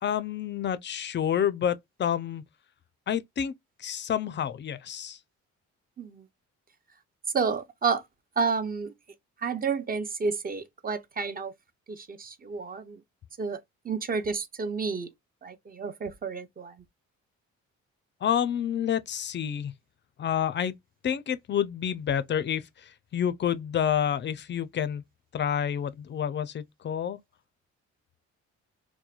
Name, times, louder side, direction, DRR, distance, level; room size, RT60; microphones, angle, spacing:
voice 1, 0.0-2.4 3.1-3.5 3.8-5.2 18.2-19.7 20.2-20.7 21.0-25.0 25.3-27.2, left 9 dB, 40° left, 0.4 m, -29 dB
voice 2, 7.3-8.0 8.4-8.9 9.4-11.5 11.9-13.0 13.4-13.6 13.8-15.1 15.4-16.7, right 5 dB, 30° right, 0.5 m, -30 dB
2.9 x 2.2 x 2.3 m
cardioid pair, 90°, 30 cm